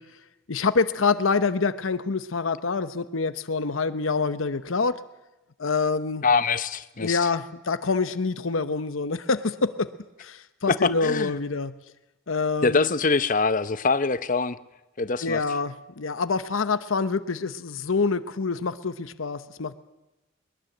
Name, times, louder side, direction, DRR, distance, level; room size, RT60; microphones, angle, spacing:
voice 1, 0.5-5.0 5.6-6.2 7.0-9.9 10.2-11.7 12.3-12.9 15.2-19.8, left 4 dB, 80° left, 12 dB, 0.8 m, -26 dB
voice 2, 6.2-7.3 10.7-11.3 12.6-14.6 15.0-15.4, left 4 dB, 40° left, 14 dB, 0.8 m, -24 dB
22.0 x 21.5 x 7.9 m, 0.99 s
head